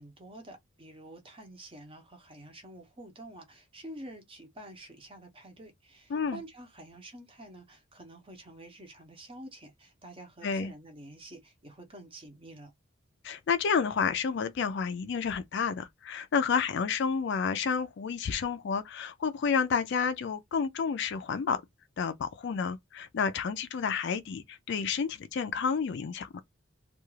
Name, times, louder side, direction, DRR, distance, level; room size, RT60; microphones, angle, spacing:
voice 1, 0.0-12.7, right 1 dB, 25° right, 0.7 m, -48 dB
voice 2, 6.1-6.4 10.4-10.7 13.2-21.6 22.0-26.4, left 6 dB, 55° left, 0.3 m, -30 dB
2.3 x 2.3 x 3.0 m
head